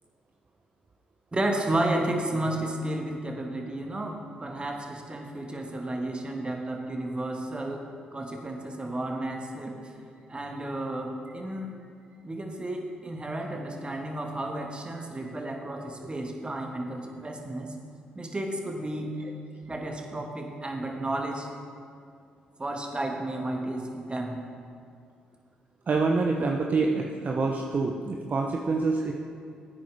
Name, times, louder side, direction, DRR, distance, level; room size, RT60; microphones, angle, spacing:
voice 1, 1.3-9.9 10.3-11.7 12.2-17.8 18.2-19.2 19.7-21.5 22.6-24.4, right 1 dB, 25° right, 2 dB, 1.7 m, -32 dB
voice 2, 25.9-29.1, right 3 dB, 45° right, 1 dB, 0.9 m, -26 dB
15.5 x 8.9 x 3.5 m, 2.4 s
hypercardioid pair, 45°, 4 cm